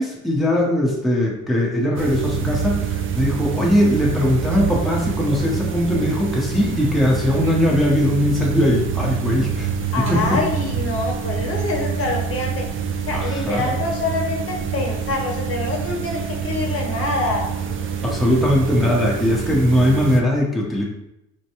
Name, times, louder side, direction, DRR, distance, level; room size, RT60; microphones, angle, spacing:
voice 1, 0.0-9.7 10.1-10.4 13.1-13.7 18.0-20.8, left 1 dB, ahead, -3 dB, 0.8 m, -20 dB
sound 1, 2.0-20.2, right 7 dB, 45° right, 0.4 m, -26 dB
voice 2, 9.9-12.6 13.1-17.4 18.3-18.4, left 3 dB, 50° left, 0 dB, 0.8 m, -25 dB
4.4 x 2.2 x 2.9 m, 0.87 s
cardioid pair, 90°, 30 cm